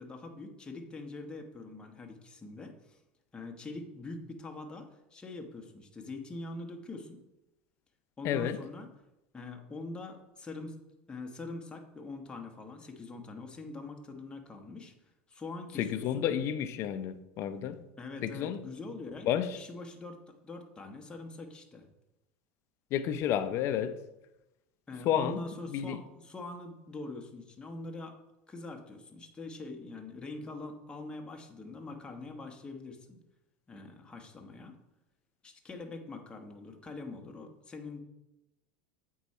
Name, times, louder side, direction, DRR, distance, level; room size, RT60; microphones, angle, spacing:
voice 1, 0.0-3.0 3.3-7.2 8.2-8.9 9.3-10.8 11.1-14.9 15.3-16.2 18.0-19.3 19.5-21.9 24.9-28.2 28.5-33.2 33.7-34.8 35.4-38.0, left 3 dB, 15° left, 1.1 m, -43 dB
voice 2, 8.2-8.6 15.8-17.8 18.2-18.6 19.2-19.6 22.9-23.9 25.0-25.4 25.7-26.0, left 10 dB, 50° left, 0.6 m, -31 dB
8.1 x 4.7 x 4.3 m
supercardioid pair, 105°, 6 cm